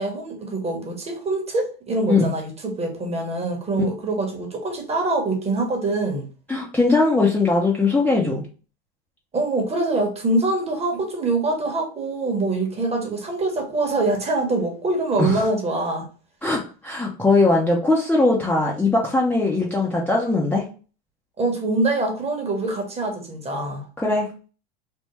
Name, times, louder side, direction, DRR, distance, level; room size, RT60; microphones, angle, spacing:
voice 1, 0.0-6.3 9.3-16.0 21.4-23.9, right 2 dB, 20° right, 1.1 m, -24 dB
voice 2, 6.5-8.4 15.2-15.4 16.4-20.6 24.0-24.3, left 3 dB, 5° left, 0.6 m, -20 dB
3.5 x 2.1 x 3.1 m
hypercardioid pair, 100°, 30 cm